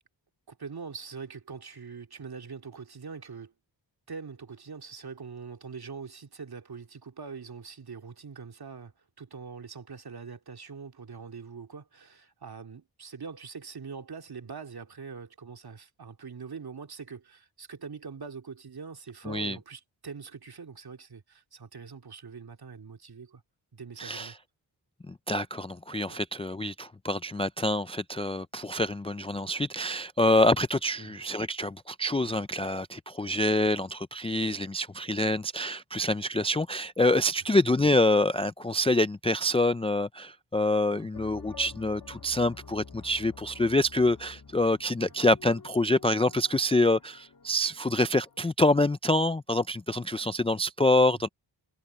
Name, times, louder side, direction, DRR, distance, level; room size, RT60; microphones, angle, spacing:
voice 1, 0.5-3.5 4.1-23.4 23.7-24.4 26.1-26.2 31.0-31.2 37.4-37.5 40.9-41.1 45.0-45.1 51.0-51.2, right 5 dB, 55° right, 2.4 m, -43 dB
voice 2, 19.3-19.6 24.0-24.3 25.1-51.3, left 1 dB, 15° left, 0.3 m, -26 dB
sound 1, 41.1-48.5, left 5 dB, 50° left, 3.4 m, -49 dB
wide cardioid pair, 110°, 46 cm